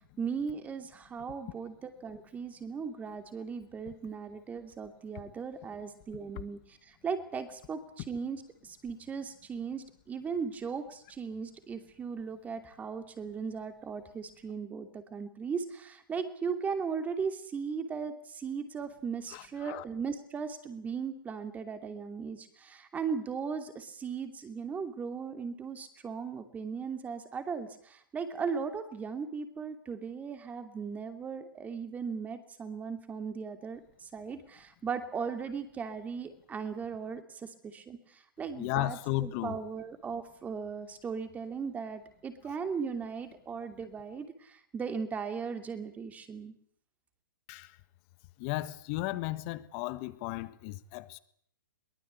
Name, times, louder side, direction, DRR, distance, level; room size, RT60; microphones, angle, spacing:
voice 1, 0.2-33.8 34.1-38.0 38.4-46.5, right 6 dB, 15° right, 2.8 m, -37 dB
voice 2, 19.3-19.8 38.6-39.6 47.5-47.7 48.4-51.2, left 18 dB, 35° left, 1.5 m, -35 dB
22.5 x 19.5 x 8.3 m
hypercardioid pair, 135°, 11 cm